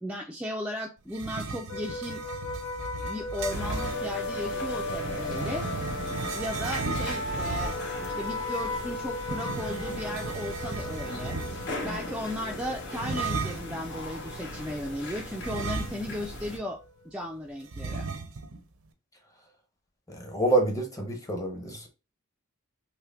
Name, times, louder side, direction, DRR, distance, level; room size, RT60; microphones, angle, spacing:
voice 1, 0.0-2.2 3.0-5.7 6.3-7.7 8.1-11.4 11.8-18.1, left 1 dB, 5° right, 0.4 m, -36 dB
sound 1, 1.1-4.0 4.9-8.0 9.2-11.8 12.9-13.8 15.4-16.3 16.6-16.7 17.7-18.6, right 4 dB, 75° right, 0.6 m, -35 dB
sound 2, 1.7-17.0, left 2 dB, 70° left, 2.2 m, -37 dB
sound 3, 3.5-16.6, left 1 dB, 55° left, 1.1 m, -39 dB
voice 2, 20.1-21.9, right 2 dB, 15° left, 0.8 m, -27 dB
5.6 x 2.1 x 2.4 m
head